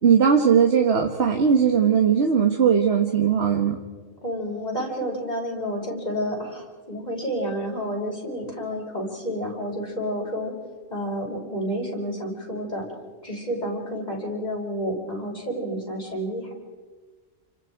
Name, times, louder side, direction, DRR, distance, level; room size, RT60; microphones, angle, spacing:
voice 1, 0.0-3.8, right 7 dB, 55° right, 3 dB, 1.7 m, -19 dB
voice 2, 4.2-10.5 10.9-12.9 13.2-16.5, equal, 35° left, -2 dB, 5.9 m, -30 dB
30.0 x 26.5 x 4.7 m, 1.4 s
omnidirectional pair, 1.3 m